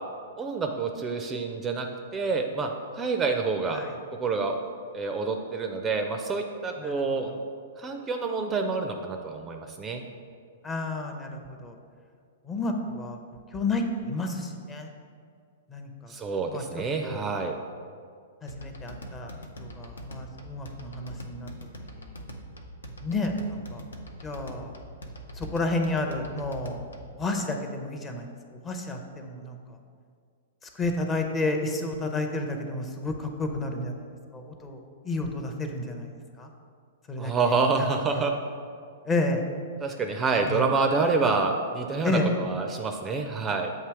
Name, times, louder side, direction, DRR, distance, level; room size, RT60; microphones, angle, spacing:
voice 1, 0.4-1.9 2.1-3.8 4.2-4.6 4.9-7.3 7.8-10.0 16.1-17.6 37.2-38.3 39.8-43.7, right 4 dB, 20° right, 4 dB, 0.4 m, -27 dB
voice 2, 6.8-7.2 10.6-11.8 12.5-13.2 13.5-14.9 15.7-16.1 16.5-16.6 17.0-17.2 18.4-19.3 19.6-21.5 22.0-22.1 23.0-23.8 24.2-24.7 25.4-26.8 27.2-28.3 28.6-29.6 30.8-34.1 34.3-34.8 35.0-36.1 36.4-36.5 37.1-37.3 37.8-38.2 39.1-39.4 40.5-40.6 42.0-42.3, left 2 dB, 20° left, 3 dB, 0.6 m, -31 dB
sound 1, 18.5-27.2, equal, 85° left, 0.6 m, -43 dB
7.4 x 2.8 x 4.6 m, 2.2 s
hypercardioid pair, 115°, 0 cm